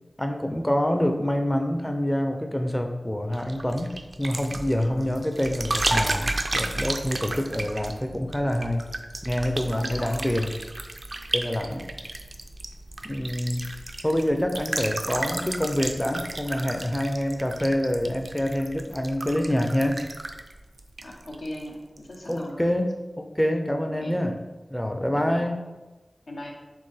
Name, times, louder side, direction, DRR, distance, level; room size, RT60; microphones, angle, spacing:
voice 1, 0.2-8.9 9.2-10.5 11.3-11.9 13.0-13.7 14.0-20.0 22.3-24.4 24.7-25.6, equal, 10° left, 4 dB, 0.4 m, -26 dB
sound 1, 3.3-21.7 22.0-22.4, right 2 dB, 55° right, 0.4 m, -33 dB
voice 2, 4.8-5.1 7.3-7.4 9.7-10.3 11.5-11.8 21.0-22.7 24.0-24.2 25.1-25.5 26.3-26.5, left 1 dB, 90° left, -1 dB, 0.8 m, -39 dB
4.4 x 3.3 x 3.3 m, 1.2 s
wide cardioid pair, 50°, 0 cm